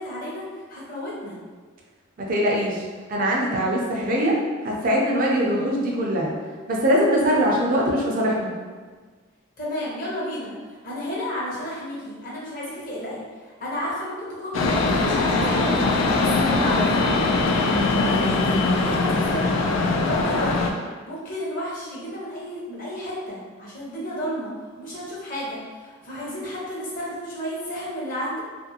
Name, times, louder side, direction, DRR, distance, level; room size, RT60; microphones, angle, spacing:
voice 1, 0.0-1.4 9.6-15.8 16.2-16.9 17.9-20.7 21.1-28.4, equal, 45° left, -6 dB, 0.8 m, -32 dB
voice 2, 2.2-2.8 3.1-4.4 4.6-6.3 6.7-8.5, equal, 45° right, -3 dB, 0.5 m, -22 dB
sound 1, 14.5-20.7, left 3 dB, 90° left, 0.4 m, -21 dB
2.6 x 2.5 x 2.7 m, 1.5 s
head